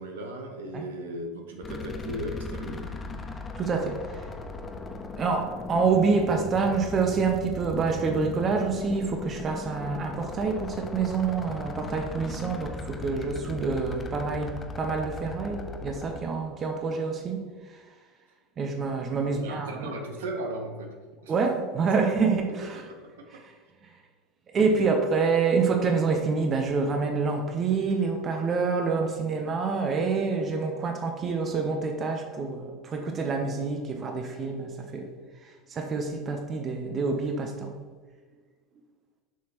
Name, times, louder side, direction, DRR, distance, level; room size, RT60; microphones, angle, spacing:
voice 1, 0.0-2.8 19.2-20.9 21.2-21.3 23.0-23.1, right 1 dB, 70° right, 3 dB, 1.0 m, -36 dB
sound 1, 1.6-16.2, left 3 dB, 25° left, 0.7 m, -38 dB
voice 2, 3.6-4.3 5.2-17.4 17.7-17.8 18.6-19.9 21.3-22.9 23.3-23.5 23.8-23.9 24.5-35.1 35.4-37.7, right 4 dB, 35° right, 4 dB, 0.8 m, -27 dB
7.2 x 6.0 x 3.0 m, 1.5 s
figure-of-eight pair, 75°, 0 cm